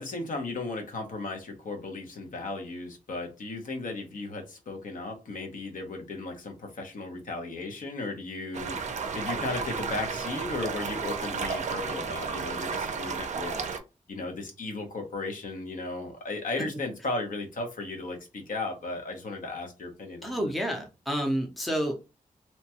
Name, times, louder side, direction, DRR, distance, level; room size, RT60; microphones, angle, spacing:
voice 1, 0.0-13.6 14.1-20.4, left 3 dB, 70° left, 3 dB, 0.9 m, -35 dB
sound 1, 8.5-13.8, right 5 dB, 55° right, 0.4 m, -33 dB
voice 2, 20.2-22.0, equal, ahead, 2 dB, 0.5 m, -29 dB
2.9 x 2.2 x 2.8 m, 0.28 s
wide cardioid pair, 175°, 14 cm